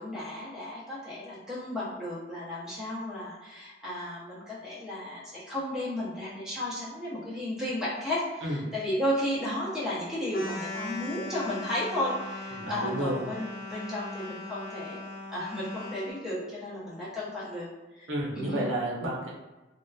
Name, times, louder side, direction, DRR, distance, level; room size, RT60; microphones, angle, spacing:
voice 1, 0.0-15.0 15.3-17.7 17.9-18.1 18.3-18.7, left 1 dB, 5° right, -8 dB, 0.6 m, -33 dB
sound 1, 10.3-16.1, left 2 dB, 55° left, 0.8 m, -39 dB
voice 2, 12.5-13.2 18.1-19.3, right 1 dB, 70° right, -3 dB, 0.6 m, -31 dB
2.7 x 2.1 x 2.3 m, 1.1 s
head